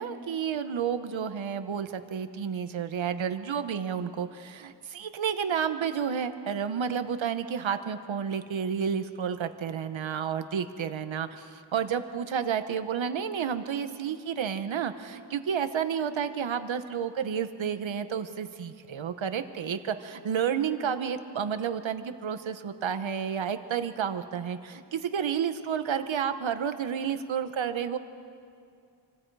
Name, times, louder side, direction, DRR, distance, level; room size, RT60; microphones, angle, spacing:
voice 1, 0.0-28.0, right 7 dB, 85° right, 9 dB, 1.2 m, -31 dB
27.5 x 25.5 x 4.8 m, 2.3 s
wide cardioid pair, 170°, 45 cm